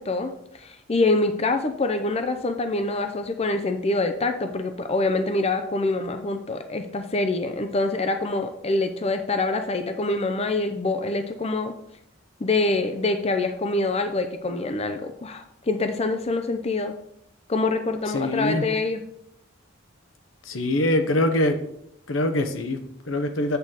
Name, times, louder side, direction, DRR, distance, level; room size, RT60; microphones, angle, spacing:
voice 1, 0.0-11.7 12.4-16.9 17.5-19.0, left 2 dB, 30° left, 7 dB, 0.5 m, -25 dB
voice 2, 18.1-18.6 20.5-21.6 22.1-23.6, left 1 dB, 80° left, 7 dB, 1.0 m, -23 dB
8.3 x 4.0 x 6.4 m, 0.75 s
head